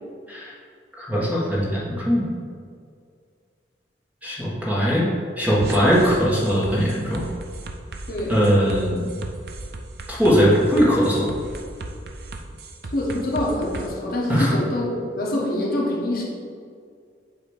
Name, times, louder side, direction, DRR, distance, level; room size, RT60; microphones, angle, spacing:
voice 1, 1.0-2.3 4.2-5.1 5.4-7.2 8.3-9.2 10.1-11.3 14.3-14.5, equal, 10° right, -6 dB, 1.4 m, -20 dB
sound 1, 5.6-13.9, right 2 dB, 60° right, 0.6 m, -36 dB
voice 2, 8.1-8.4 12.9-16.2, left 1 dB, 55° left, -3 dB, 1.3 m, -25 dB
8.5 x 2.9 x 6.3 m, 2.1 s
head